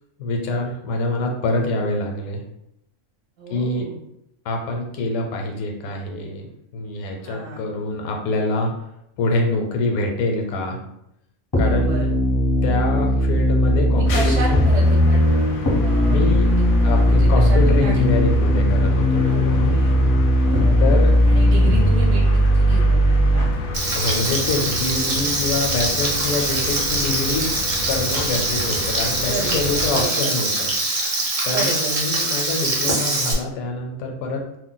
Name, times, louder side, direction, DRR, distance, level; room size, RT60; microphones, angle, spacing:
voice 1, 0.2-2.4 3.5-3.9 4.4-6.5 6.7-8.7 9.2-10.8 11.6-12.1 12.6-14.7 16.1-16.5 16.8-19.8 20.8-21.2 23.9-27.5 27.9-30.7 31.4-34.4, left 2 dB, 85° left, 2 dB, 1.0 m, -25 dB
voice 2, 3.4-4.0 7.2-7.6 11.5-12.1 13.9-15.2 15.8-18.1 19.3-19.4 19.7-20.0 20.4-20.8 21.3-23.5 29.2-30.3 31.5-31.9, right 3 dB, 65° right, -1 dB, 0.9 m, -32 dB
sound 1, 11.5-23.5, equal, 30° left, 0.4 m, -17 dB
sound 2, 14.0-30.0, left 2 dB, 65° left, 0.7 m, -31 dB
Frying (food), 23.7-33.3, right 2 dB, 40° right, 0.5 m, -23 dB
2.6 x 2.0 x 3.8 m, 0.80 s
omnidirectional pair, 1.5 m